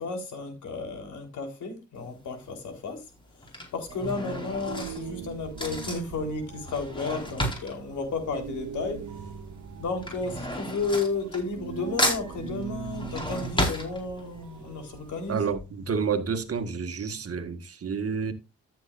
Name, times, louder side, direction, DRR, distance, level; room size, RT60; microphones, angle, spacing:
voice 1, 0.0-9.3 9.8-15.5, left 3 dB, 65° left, 4.1 m, -33 dB
Drawer open or close / Cutlery silverware, 2.0-2.4 3.2-9.1 9.4-11.7 12.0-14.5 14.9-15.0 15.2-15.3, equal, 15° left, 4.5 m, -32 dB
sound 1, 3.9-16.7, right 7 dB, 65° right, 1.6 m, -42 dB
voice 2, 15.3-18.3, right 5 dB, 45° right, 1.7 m, -29 dB
13.5 x 7.5 x 2.5 m
supercardioid pair, 60°, 32 cm